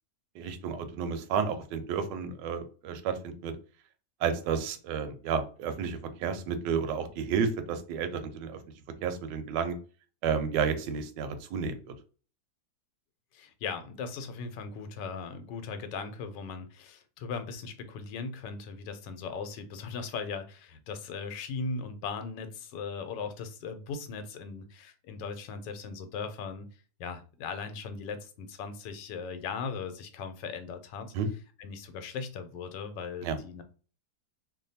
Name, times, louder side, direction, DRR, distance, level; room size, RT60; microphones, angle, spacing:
voice 1, 0.4-3.2 3.4-3.5 4.2-8.6 9.0-9.7 10.2-11.7 31.1-31.3 33.2-33.4, right 6 dB, 85° right, 8 dB, 1.2 m, -31 dB
voice 2, 13.3-26.7 27.0-31.1 31.6-33.6, left 5 dB, 85° left, 8 dB, 1.3 m, -38 dB
3.0 x 2.2 x 4.0 m, 0.38 s
omnidirectional pair, 1.9 m